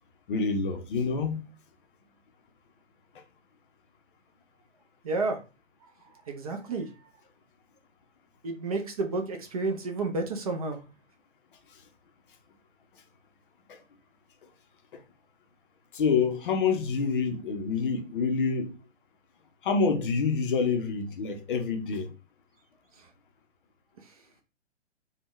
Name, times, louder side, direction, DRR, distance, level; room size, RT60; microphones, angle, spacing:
voice 1, 0.3-1.5 13.7-13.8 15.9-18.7 19.6-22.1, left 5 dB, 45° left, 0.6 m, -27 dB
voice 2, 5.0-5.4 5.8-5.9 6.3-6.9 8.4-10.8 23.0-23.1 24.0-24.1, right 3 dB, 30° right, 0.4 m, -31 dB
3.4 x 2.1 x 2.9 m
figure-of-eight pair, 120°, 36 cm